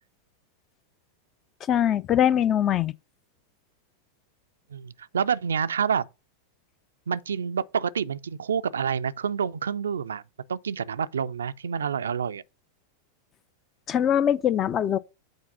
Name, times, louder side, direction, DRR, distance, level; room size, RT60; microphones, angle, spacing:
voice 1, 1.7-2.9 13.9-15.0, left 10 dB, 30° left, 0.4 m, -22 dB
voice 2, 4.7-6.1 7.1-10.2 10.5-12.4, right 7 dB, 70° right, 0.3 m, -28 dB
8.0 x 4.6 x 5.4 m
figure-of-eight pair, 90°, 0 cm